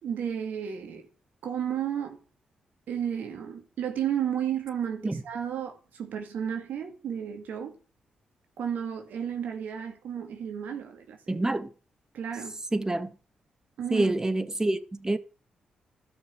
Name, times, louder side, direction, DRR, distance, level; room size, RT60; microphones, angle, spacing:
voice 1, 0.0-1.1 1.4-2.2 2.9-7.8 8.6-11.4 12.1-12.6 13.8-14.1, right 8 dB, 75° right, 2.4 m, -33 dB
voice 2, 11.3-11.7 12.7-13.1 13.9-15.2, right 2 dB, 20° right, 1.7 m, -27 dB
12.5 x 6.2 x 8.9 m
hypercardioid pair, 45°, 3 cm